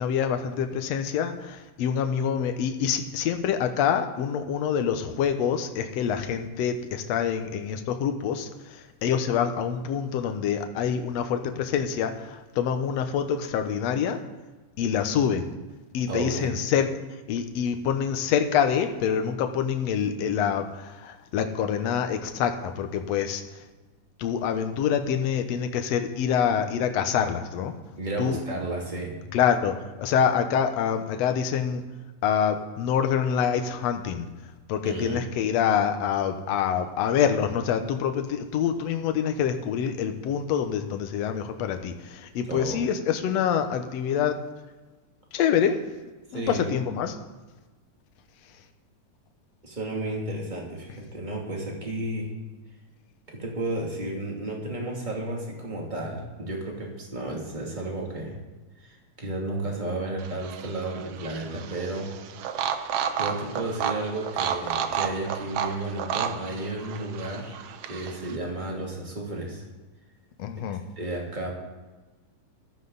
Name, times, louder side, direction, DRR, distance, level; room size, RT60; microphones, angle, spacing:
voice 1, 0.0-14.2 14.8-15.5 15.9-16.9 17.3-23.6 24.2-27.7 28.2-28.4 29.3-31.8 32.2-34.3 34.7-44.4 45.3-45.8 46.3-47.2 70.4-70.8, left 8 dB, 70° left, 7 dB, 1.8 m, -26 dB
voice 2, 16.1-16.5 28.0-29.2 34.8-35.2 42.5-42.8 46.3-46.7 49.6-52.3 53.3-58.3 58.8-62.1 62.6-62.8 63.1-67.6 67.9-69.6 71.0-71.5, right 2 dB, 15° right, -2 dB, 2.3 m, -32 dB
sound 1, 60.2-68.4, right 8 dB, 85° right, 1.3 m, -32 dB
15.0 x 13.5 x 4.0 m, 1.2 s
omnidirectional pair, 3.8 m